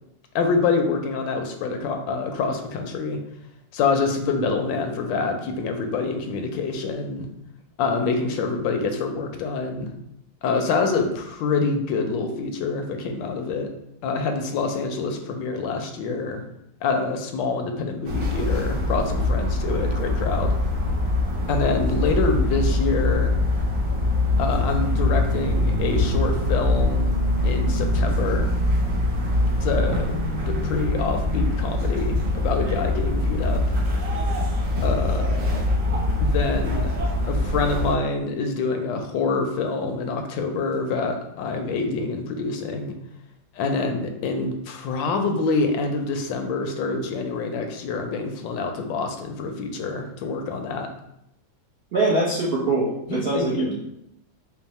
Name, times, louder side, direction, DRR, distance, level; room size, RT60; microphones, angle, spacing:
voice 1, 0.3-3.2 3.7-7.3 7.8-9.9 10.4-13.7 14.0-16.4 16.8-20.6 21.5-23.3 24.4-27.1 27.4-28.5 29.6-33.6 34.8-35.4 36.2-36.9 37.2-42.9 43.5-50.9 53.1-53.7, left 4 dB, 85° left, 5 dB, 1.3 m, -26 dB
sound 1, 18.0-37.9, left 1 dB, 80° right, 1.8 m, -23 dB
voice 2, 51.9-53.7, right 2 dB, 60° right, -7 dB, 0.6 m, -23 dB
4.5 x 2.0 x 4.0 m, 0.80 s
omnidirectional pair, 2.0 m